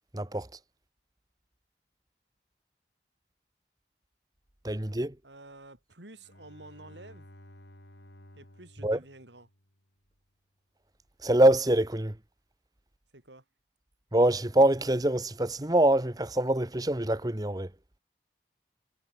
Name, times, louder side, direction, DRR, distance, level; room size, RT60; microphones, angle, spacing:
voice 1, 0.1-0.5 4.6-5.1 8.8-9.0 11.2-12.1 14.1-17.7, right 1 dB, 20° right, 1.1 m, -24 dB
voice 2, 5.2-7.3 8.3-9.5 13.1-13.5, right 2 dB, 85° right, 5.4 m, -50 dB
Bowed string instrument, 6.1-9.9, left 1 dB, 85° left, 7.5 m, -54 dB
head